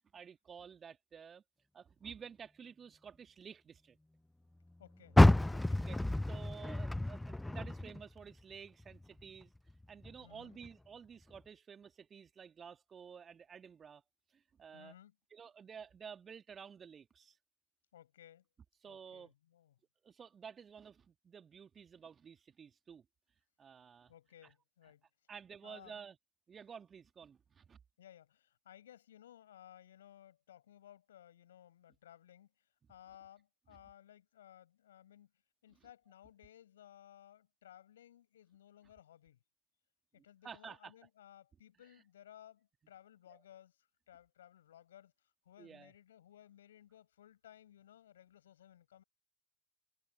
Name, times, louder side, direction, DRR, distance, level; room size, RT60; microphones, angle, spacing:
voice 1, 0.1-1.4 1.7-4.0 5.7-6.0 6.2-9.5 9.9-14.0 14.3-14.9 15.3-17.4 18.8-19.3 20.0-23.1 23.6-24.1 24.4-24.5 25.3-26.2 26.5-27.8 35.7-35.9 40.2-40.9 43.3-43.4 45.6-45.9, right 7 dB, 30° right, 2.5 m, -52 dB
voice 2, 4.8-5.2 5.5-5.9 10.2-10.6 14.7-15.2 17.9-18.5 18.9-19.7 24.1-25.1 25.6-26.0 28.0-35.3 35.6-39.4 40.1-49.0, left 11 dB, 70° left, 5.4 m, -59 dB
Car, 5.1-8.4 8.8-10.2 10.6-10.7 11.3-11.4, left 1 dB, 5° left, 0.6 m, -29 dB
figure-of-eight pair, 65°, 0 cm